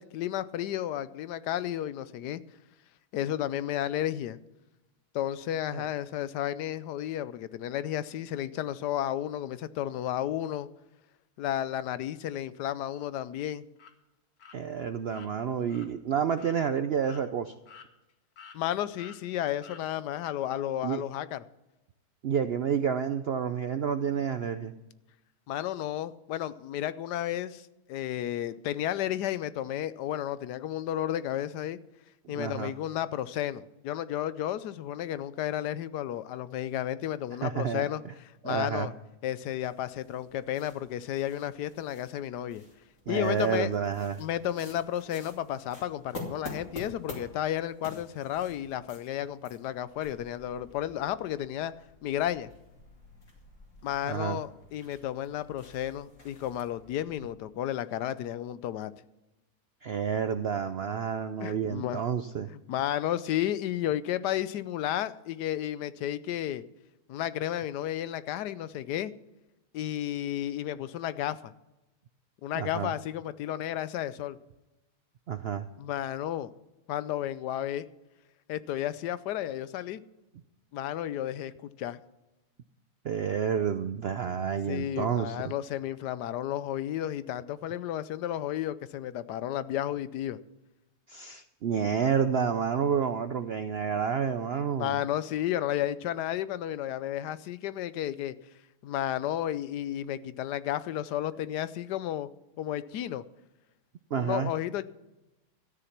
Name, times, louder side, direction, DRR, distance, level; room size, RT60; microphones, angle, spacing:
voice 1, 0.0-2.4 3.1-4.4 5.1-10.7 11.4-13.6 18.5-21.4 25.5-31.8 32.3-38.0 38.4-38.9 39.2-42.6 43.1-43.7 44.2-51.7 52.0-52.5 53.8-58.9 61.4-62.0 62.5-66.6 67.1-69.1 69.7-71.5 72.4-74.4 75.8-76.5 76.9-77.9 78.5-80.0 80.7-82.0 84.7-90.4 94.8-98.3 98.8-102.3 102.6-103.2 104.1-104.8, left 12 dB, 90° left, 1.3 m, -32 dB
sound 1, 13.8-13.9 14.4-14.6 15.1-15.3 15.7-15.9 16.4-16.6 17.0-17.2 17.7-18.1 18.4-18.6 19.0-19.2 19.6-19.8, left 6 dB, 65° left, 1.6 m, -50 dB
voice 2, 14.5-17.5 20.8-21.0 22.2-24.7 32.3-32.7 37.4-38.1 38.4-38.9 43.1-44.2 54.0-54.4 59.8-62.5 72.5-72.9 75.3-75.7 83.0-85.5 91.1-95.0 104.1-104.5, right 7 dB, 70° right, 0.5 m, -29 dB
sound 2, 39.6-57.2, left 2 dB, 50° left, 2.8 m, -49 dB
13.5 x 10.0 x 5.9 m
omnidirectional pair, 1.7 m